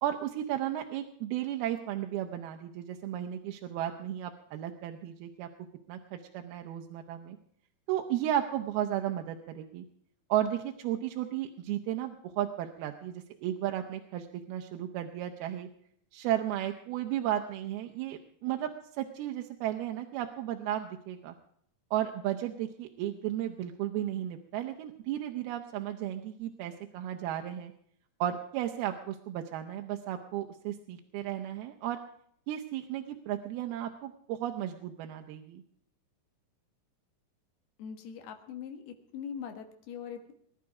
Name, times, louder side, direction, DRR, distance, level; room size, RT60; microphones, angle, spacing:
voice 1, 0.0-5.5 5.9-7.4 7.9-9.8 10.3-15.7 16.1-18.7 19.0-21.3 21.9-27.7 28.2-32.0 32.5-35.6, right 11 dB, 80° right, 4 dB, 2.8 m, -34 dB
voice 2, 37.8-40.3, left 7 dB, 85° left, 6 dB, 3.6 m, -42 dB
21.5 x 11.5 x 4.7 m, 0.68 s
omnidirectional pair, 4.4 m